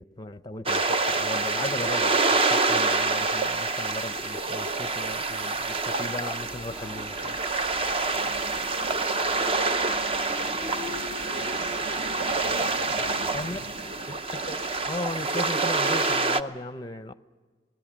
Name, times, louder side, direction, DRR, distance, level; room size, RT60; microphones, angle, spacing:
voice 1, 0.0-7.4 13.3-13.6 14.3-17.1, left 2 dB, 20° left, 0.6 m, -36 dB
sound 1, 0.7-16.4, right 3 dB, 30° right, 0.7 m, -27 dB
sound 2, 6.0-14.0, left 1 dB, 5° right, 1.7 m, -47 dB
sound 3, 6.4-13.7, equal, 60° right, 1.4 m, -44 dB
voice 2, 8.1-11.0 11.2-11.6 12.8-14.0, equal, 75° right, 4.3 m, -47 dB
28.0 x 19.5 x 7.3 m
head